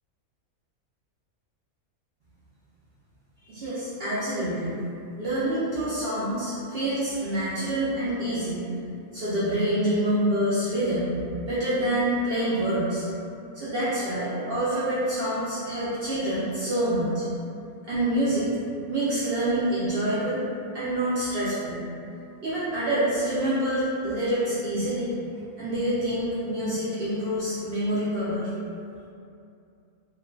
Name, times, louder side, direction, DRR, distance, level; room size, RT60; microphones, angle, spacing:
voice 1, 3.4-4.8 5.2-8.6 9.1-13.0 13.5-17.2 17.8-18.5 18.9-20.4 20.7-21.8 22.4-25.1 25.4-28.5, right 1 dB, 65° right, -11 dB, 0.6 m, -26 dB
2.4 x 2.2 x 2.2 m, 2.5 s
omnidirectional pair, 1.5 m